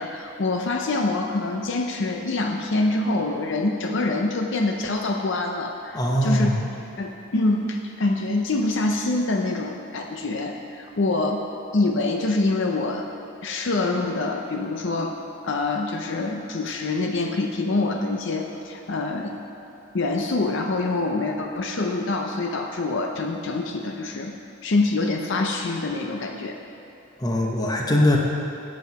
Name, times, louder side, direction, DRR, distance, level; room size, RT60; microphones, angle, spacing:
voice 1, 0.0-6.5 7.0-11.5 11.7-13.1 13.4-15.2 15.4-19.5 19.9-24.3 24.6-26.6, left 2 dB, 55° left, 2 dB, 0.6 m, -25 dB
voice 2, 5.9-6.6 27.2-28.2, left 1 dB, 15° left, -1 dB, 0.8 m, -21 dB
8.5 x 7.6 x 5.7 m, 2.7 s
head